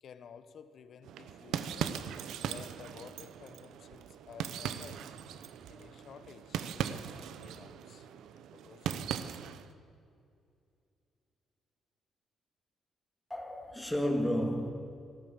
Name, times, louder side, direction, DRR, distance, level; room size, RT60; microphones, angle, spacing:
voice 1, 0.0-2.0 2.4-5.1 5.7-7.2 7.4-8.1 8.5-9.4, left 7 dB, 60° left, 12 dB, 0.9 m, -53 dB
sound 1, 1.0-9.7, right 9 dB, 80° right, 0.7 m, -39 dB
voice 2, 13.3-14.7, equal, 10° left, 4 dB, 2.0 m, -31 dB
14.5 x 12.5 x 7.4 m, 2.5 s
cardioid pair, 90°, 0 cm